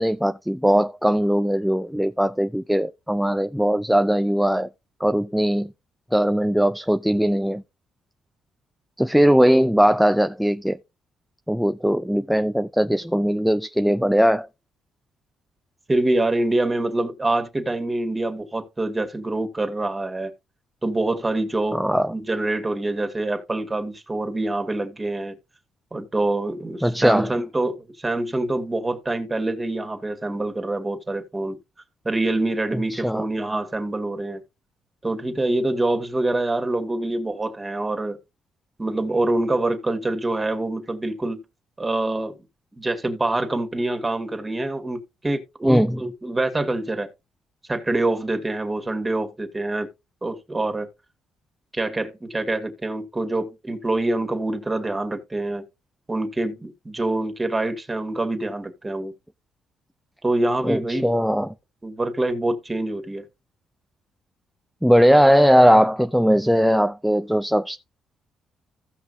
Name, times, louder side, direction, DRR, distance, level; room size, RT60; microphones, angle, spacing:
voice 1, 0.0-4.7 5.0-5.7 6.1-7.6 9.0-10.8 11.5-14.5 21.7-22.1 26.8-27.3 32.7-33.2 45.6-46.0 60.6-61.5 64.8-67.8, equal, ahead, 0.5 m, -19 dB
voice 2, 15.9-20.3 20.8-21.8 22.1-25.4 25.9-31.6 32.0-34.4 35.0-38.2 38.8-41.4 41.8-42.3 42.8-47.1 47.7-49.9 50.2-50.9 51.7-55.6 56.1-59.1 60.2-61.1 61.8-63.2, right 2 dB, 20° right, 2.4 m, -25 dB
16.0 x 5.9 x 2.8 m
cardioid pair, 90°, 0 cm